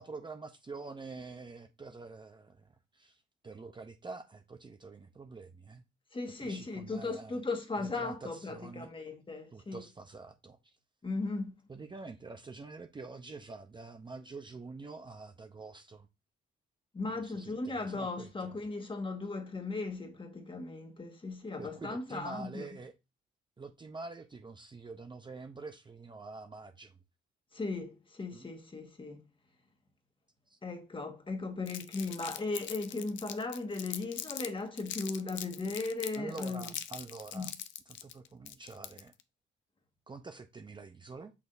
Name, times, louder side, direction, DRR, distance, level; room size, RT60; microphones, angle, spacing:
voice 1, 0.0-5.8 6.4-7.4 7.8-8.9 9.5-10.7 11.7-16.1 17.1-18.5 21.6-22.9 23.6-27.0 28.3-28.5 30.5-30.6 36.1-37.5 37.9-39.1 40.1-41.3, right 4 dB, 25° right, 0.7 m, -46 dB
voice 2, 6.1-9.8 11.0-11.5 16.9-22.7 27.5-29.2 30.6-36.7 37.3-37.5, left 3 dB, 25° left, 1.5 m, -37 dB
Crumpling crinkling, 31.7-34.5 34.8-39.2, left 11 dB, 70° left, 0.6 m, -42 dB
6.2 x 5.8 x 2.6 m
cardioid pair, 90°, 20 cm